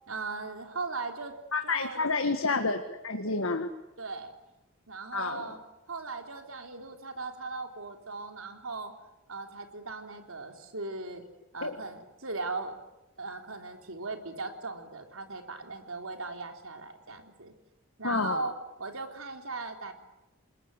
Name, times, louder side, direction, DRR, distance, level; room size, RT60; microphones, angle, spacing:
voice 1, 0.1-1.3 1.6-2.0 4.0-4.3 4.9-5.6 5.9-8.9 9.3-11.2 11.5-12.8 13.2-17.5 18.0-18.5 18.8-19.9, right 3 dB, 80° right, 5 dB, 3.6 m, -38 dB
voice 2, 1.5-3.7 5.1-5.5 11.6-11.8 18.0-18.5, left 3 dB, 75° left, 6 dB, 1.7 m, -29 dB
28.5 x 20.5 x 9.8 m, 0.94 s
head